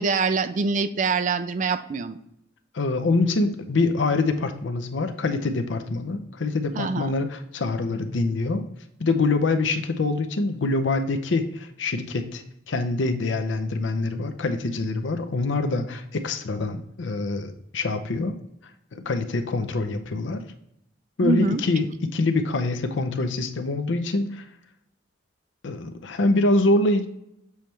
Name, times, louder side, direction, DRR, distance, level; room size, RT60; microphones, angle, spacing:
voice 1, 0.0-2.2 6.8-7.1 21.2-21.6, right 4 dB, 40° right, 12 dB, 0.3 m, -24 dB
voice 2, 2.7-8.6 9.0-18.4 18.9-20.4 21.2-24.4 25.6-27.1, left 2 dB, 75° left, 7 dB, 0.6 m, -25 dB
7.0 x 3.2 x 4.3 m, 0.80 s
head